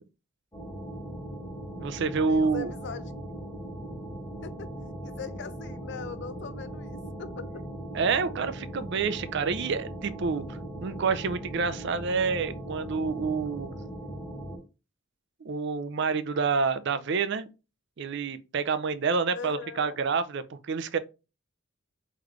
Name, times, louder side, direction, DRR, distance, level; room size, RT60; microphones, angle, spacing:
sound 1, 0.5-14.6, right 1 dB, 15° left, 1.5 m, -39 dB
voice 1, 1.8-2.7 7.9-13.8 15.4-17.5 18.0-21.0, right 5 dB, 55° right, 0.4 m, -28 dB
voice 2, 2.3-3.1 3.4-3.6 4.4-4.7 5.0-7.6 19.3-20.0, left 5 dB, 55° left, 0.4 m, -41 dB
4.0 x 3.1 x 3.0 m
head